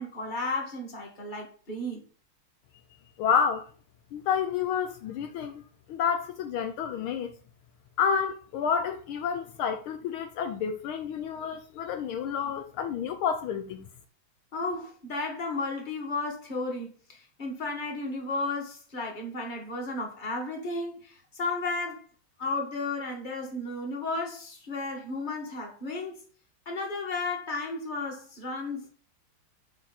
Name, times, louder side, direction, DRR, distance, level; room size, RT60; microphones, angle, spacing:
voice 1, 0.0-2.0 14.5-22.0 22.4-26.2 26.6-28.9, left 3 dB, 25° left, 1.7 m, -33 dB
voice 2, 3.2-3.7 4.1-5.6 5.9-7.3 8.0-13.8, left 7 dB, 75° left, 1.5 m, -29 dB
7.3 x 4.8 x 4.0 m
omnidirectional pair, 2.4 m